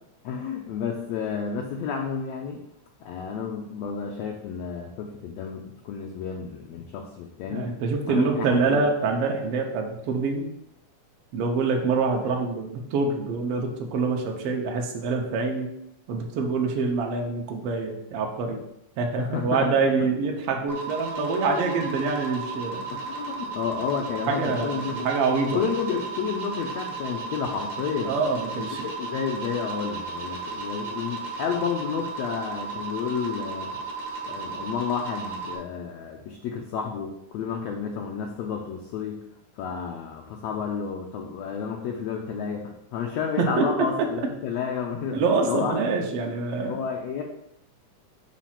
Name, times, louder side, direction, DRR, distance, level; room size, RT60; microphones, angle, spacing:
voice 1, 0.2-2.6 3.0-7.7 8.0-8.9 19.2-19.7 20.0-20.1 22.9-28.1 28.5-33.8 34.2-39.2 39.6-45.2 45.5-45.8 46.7-47.2, left 6 dB, 80° left, 1 dB, 1.5 m, -31 dB
voice 2, 7.5-10.5 11.3-15.7 16.1-18.6 19.0-22.8 24.3-25.6 28.0-28.9 43.4-44.1 45.1-46.8, right 4 dB, 75° right, 2 dB, 1.4 m, -25 dB
sound 1, 20.7-35.6, right 4 dB, 55° right, 0.8 m, -35 dB
7.3 x 2.5 x 5.7 m, 0.79 s
omnidirectional pair, 3.6 m